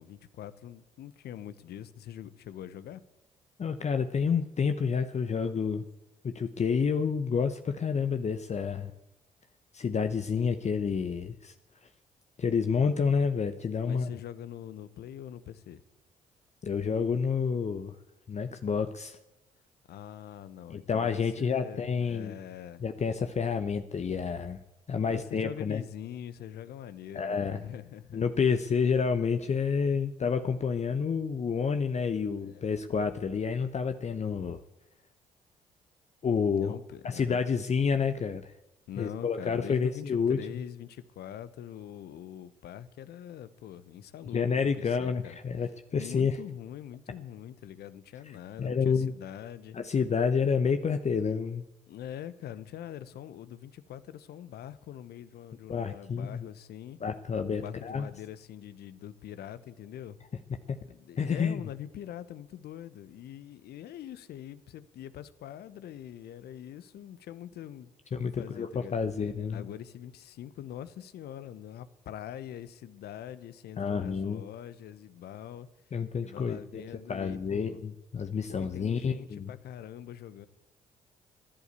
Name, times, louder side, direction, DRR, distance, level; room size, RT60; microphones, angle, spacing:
voice 1, 0.0-3.0 13.8-15.8 19.9-22.8 25.1-28.2 32.1-32.7 36.6-37.4 38.9-45.4 45.9-49.8 51.9-57.0 57.5-60.2 60.8-69.0 69.5-75.7 76.2-77.8 78.5-80.5, left 10 dB, 60° left, 15 dB, 1.0 m, -43 dB
voice 2, 3.6-5.8 6.2-8.9 9.7-11.5 12.4-14.1 16.6-18.0 18.3-19.2 20.7-22.3 22.8-24.6 24.9-25.8 27.1-27.6 28.1-34.6 36.2-36.7 37.0-38.5 39.0-40.4 44.3-46.4 48.6-49.1 49.7-51.6 55.7-56.5 57.0-58.1 60.7-60.8 61.2-61.6 68.1-69.7 73.8-74.4 75.9-76.8 77.1-79.5, left 6 dB, 40° left, 8 dB, 0.9 m, -29 dB
15.5 x 11.0 x 8.3 m, 0.92 s
hypercardioid pair, 45°, 18 cm